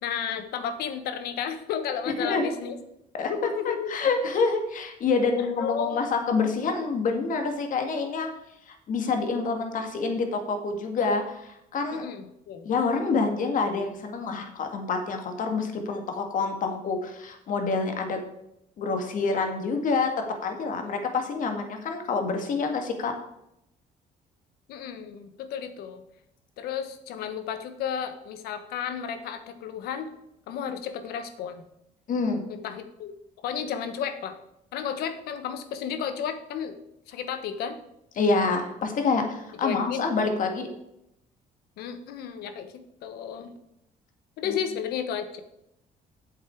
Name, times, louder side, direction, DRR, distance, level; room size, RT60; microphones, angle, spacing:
voice 1, 0.0-2.8 3.3-3.9 5.4-6.1 6.6-6.7 11.9-12.7 24.7-26.0 26.6-30.1 30.5-31.6 32.5-33.1 33.4-34.4 34.7-36.8 37.1-37.8 39.6-40.1 41.8-42.7 43.0-43.5 44.4-45.4, left 8 dB, 85° left, 9 dB, 1.2 m, -33 dB
voice 2, 2.2-2.6 3.1-8.3 8.7-12.0 12.6-18.2 18.8-23.1 32.1-32.4 38.2-40.7, left 4 dB, 60° left, 5 dB, 1.9 m, -27 dB
8.6 x 7.4 x 4.6 m, 0.81 s
cardioid pair, 105°, 16 cm